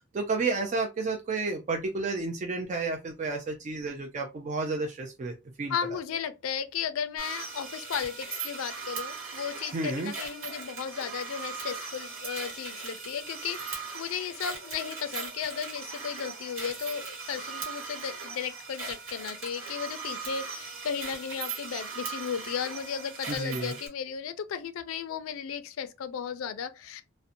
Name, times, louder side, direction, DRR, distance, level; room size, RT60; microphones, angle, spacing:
voice 1, 0.1-5.7 9.7-10.1 23.3-23.7, right 3 dB, 35° right, 0.4 m, -31 dB
voice 2, 5.7-27.0, left 7 dB, 80° left, 0.4 m, -35 dB
sound 1, 7.2-23.9, right 5 dB, 80° right, 1.0 m, -39 dB
2.6 x 2.1 x 2.5 m
head